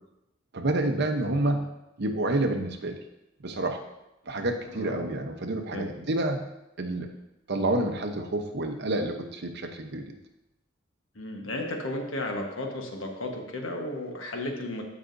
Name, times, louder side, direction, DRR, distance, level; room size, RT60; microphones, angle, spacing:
voice 1, 0.5-1.6 2.0-3.0 3.4-3.8 4.3-6.4 6.8-7.1 7.5-10.1, right 2 dB, 60° right, 5 dB, 0.8 m, -28 dB
voice 2, 4.7-5.1 5.7-5.9 11.1-14.8, left 1 dB, 80° left, 2 dB, 1.3 m, -34 dB
15.0 x 5.0 x 2.6 m, 0.92 s
head